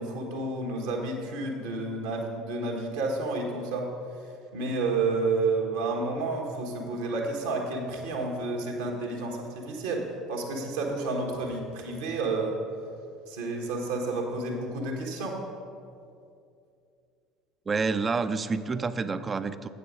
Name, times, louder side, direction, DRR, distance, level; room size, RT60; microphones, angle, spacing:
voice 1, 0.0-3.9 4.5-12.6 13.3-15.4, right 3 dB, 75° right, 0 dB, 1.3 m, -30 dB
voice 2, 17.7-19.7, right 4 dB, 30° right, 13 dB, 0.4 m, -28 dB
8.4 x 6.7 x 5.1 m, 2.5 s
figure-of-eight pair, 65°, 0 cm